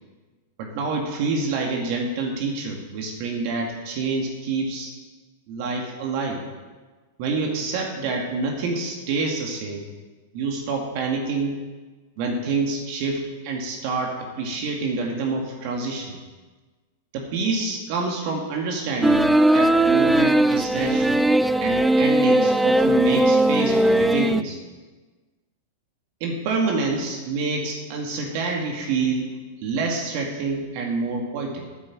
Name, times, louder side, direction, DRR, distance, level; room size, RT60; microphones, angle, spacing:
voice 1, 0.6-4.9 5.5-6.4 7.2-9.8 10.3-11.6 12.2-16.2 17.1-21.2 21.6-24.6 26.2-29.3 29.6-31.6, right 3 dB, 55° right, 1 dB, 2.1 m, -27 dB
sound 1, 19.0-24.4, right 1 dB, 5° right, 0.4 m, -18 dB
9.0 x 8.6 x 7.6 m, 1.3 s
hypercardioid pair, 125°, 0 cm